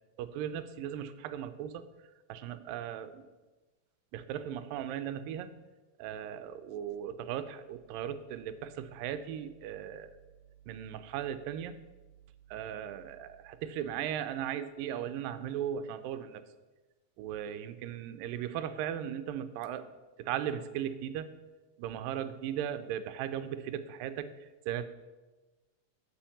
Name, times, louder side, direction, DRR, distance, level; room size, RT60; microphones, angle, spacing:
voice 1, 0.2-1.9 2.3-3.2 4.1-5.5 6.0-10.1 10.7-11.8 12.5-16.4 17.2-19.9 20.2-21.3 21.8-24.9, right 10 dB, 85° right, 11 dB, 2.3 m, -37 dB
7.2 x 6.9 x 7.1 m, 1.2 s
omnidirectional pair, 3.9 m